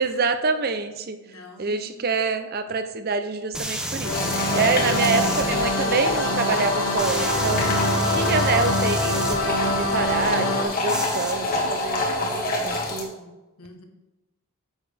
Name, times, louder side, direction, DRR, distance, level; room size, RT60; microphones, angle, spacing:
voice 1, 0.0-1.2 1.6-4.2 4.6-7.7 8.1-13.1, right 4 dB, 45° right, 9 dB, 0.6 m, -26 dB
voice 2, 1.2-1.9 12.5-13.8, left 2 dB, 85° left, 3 dB, 1.3 m, -47 dB
sound 1, 3.5-5.6 7.0-10.2 10.9-11.3, equal, 5° right, 0.7 m, -30 dB
sound 2, 4.0-10.6, left 1 dB, 60° left, 1.3 m, -25 dB
sound 3, 4.1-13.0, left 2 dB, 40° left, 1.4 m, -27 dB
9.6 x 7.0 x 3.4 m, 1.1 s
head